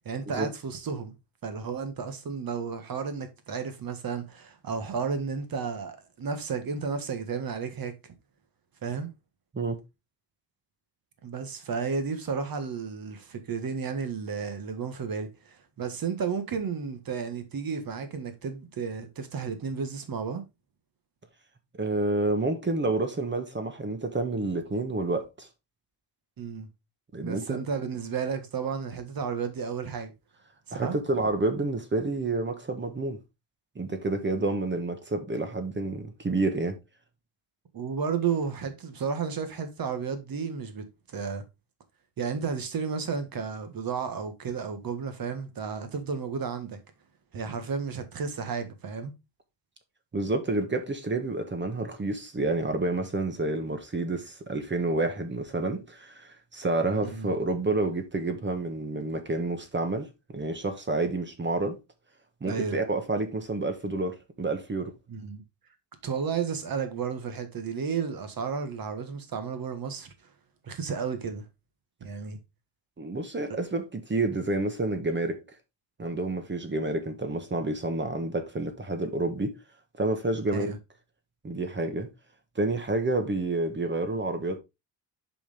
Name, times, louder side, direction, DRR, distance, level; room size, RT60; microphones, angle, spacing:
voice 1, 0.1-1.1 1.4-8.1 8.8-9.1 11.2-20.4 26.4-26.7 27.2-30.1 30.7-31.0 37.7-41.4 42.2-46.8 47.3-49.1 57.0-57.3 62.4-62.8 65.1-65.4 66.0-70.1 70.7-71.5 72.0-72.4 80.5-80.8, right 5 dB, 50° right, 1.7 m, -32 dB
voice 2, 21.8-25.5 27.1-27.6 30.7-33.2 33.7-36.8 50.1-61.8 62.4-64.9 73.0-75.4 76.0-79.6 80.0-80.7 81.4-82.1 82.5-84.6, right 2 dB, 25° right, 1.3 m, -29 dB
8.6 x 5.1 x 3.6 m
cardioid pair, 140°, 43 cm